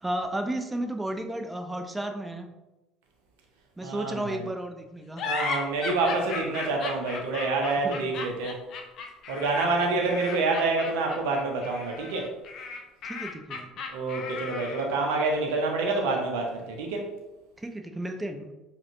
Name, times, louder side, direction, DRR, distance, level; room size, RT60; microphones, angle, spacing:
voice 1, 0.0-2.5 3.8-5.2 7.8-8.0 9.9-10.0 13.0-13.7 17.6-18.5, right 1 dB, 15° right, 5 dB, 0.5 m, -33 dB
voice 2, 3.8-4.4 5.2-8.6 9.3-12.3 13.9-17.1, right 3 dB, 70° right, 1 dB, 0.5 m, -27 dB
sound 1, 5.2-15.0, left 5 dB, 55° left, 0.5 m, -36 dB
4.9 x 2.2 x 2.5 m, 1.0 s
hypercardioid pair, 60°, 0 cm